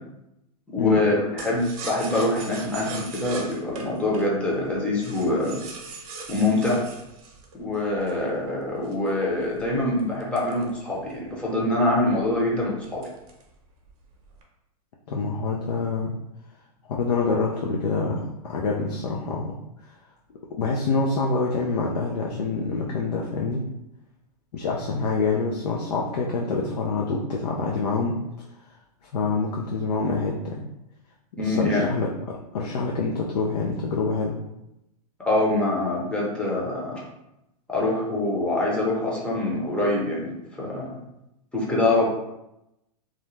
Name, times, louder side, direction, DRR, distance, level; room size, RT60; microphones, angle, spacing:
voice 1, 0.7-5.6 6.3-6.8 7.6-13.0 31.4-31.9 35.3-37.0 37.7-40.9 41.5-42.1, left 2 dB, 5° left, -5 dB, 0.6 m, -24 dB
sound 1, 1.4-8.3 8.8-11.3 11.7-11.8 12.1-12.4 12.8-13.5 13.9-14.4, right 4 dB, 60° right, 0.7 m, -40 dB
voice 2, 15.1-16.2 16.9-19.5 20.5-23.6 24.5-28.2 29.1-30.7 31.4-34.4, left 4 dB, 75° left, -2 dB, 0.5 m, -26 dB
2.4 x 2.1 x 3.1 m, 0.88 s
hypercardioid pair, 125°, 20 cm